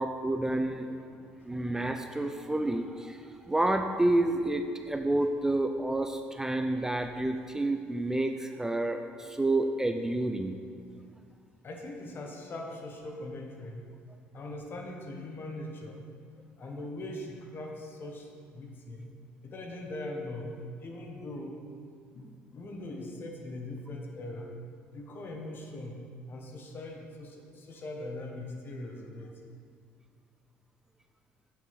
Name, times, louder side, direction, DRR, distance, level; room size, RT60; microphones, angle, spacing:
voice 1, 0.0-1.0 1.5-3.2 3.5-10.5, right 2 dB, 10° right, 6 dB, 0.4 m, -29 dB
voice 2, 1.1-1.5 11.6-13.9 14.3-16.0 16.6-19.1 19.4-21.6 22.1-24.5 24.9-29.4, left 1 dB, 45° left, 1 dB, 1.3 m, -41 dB
8.2 x 7.0 x 3.6 m, 2.2 s
supercardioid pair, 70°, 5 cm